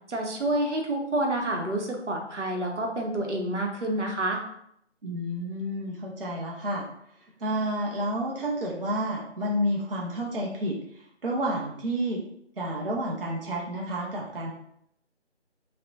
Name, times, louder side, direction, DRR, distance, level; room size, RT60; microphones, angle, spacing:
voice 1, 0.1-4.4, right 1 dB, 85° right, 1 dB, 0.7 m, -28 dB
voice 2, 5.0-6.9 7.4-12.2 12.6-14.5, equal, 55° right, -2 dB, 0.4 m, -30 dB
2.5 x 2.0 x 2.3 m, 0.72 s
figure-of-eight pair, 160°, 35 cm